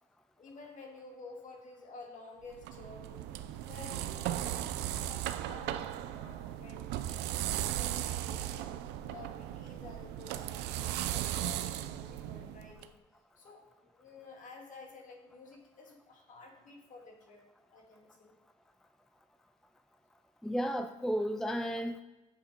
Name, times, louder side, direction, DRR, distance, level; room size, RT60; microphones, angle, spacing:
voice 1, 0.4-3.4 3.7-8.7 9.1-13.0 13.4-17.4 17.7-18.3, left 3 dB, 50° left, 1 dB, 2.3 m, -52 dB
sound 1, 2.5-12.9, right 12 dB, 90° right, 0.5 m, -37 dB
voice 2, 20.4-22.0, equal, 5° left, 8 dB, 0.3 m, -33 dB
7.4 x 6.7 x 5.2 m, 1.1 s
cardioid pair, 110°, 17 cm